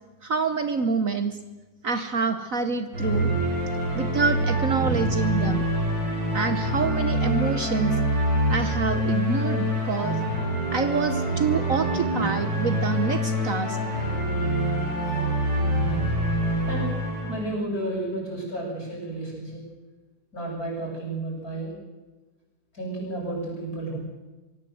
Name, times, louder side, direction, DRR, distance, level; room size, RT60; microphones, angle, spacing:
voice 1, 0.2-1.4 1.8-3.3 3.9-5.7 6.3-8.0 8.5-10.2 10.7-13.8, right 4 dB, 50° right, 10 dB, 1.3 m, -26 dB
sound 1, 2.9-17.4, right 1 dB, 65° right, 7.7 m, -25 dB
voice 2, 17.2-19.6 20.3-21.7 22.7-24.0, right 2 dB, 50° left, -2 dB, 8.5 m, -32 dB
23.5 x 17.0 x 7.9 m, 1.2 s
omnidirectional pair, 2.0 m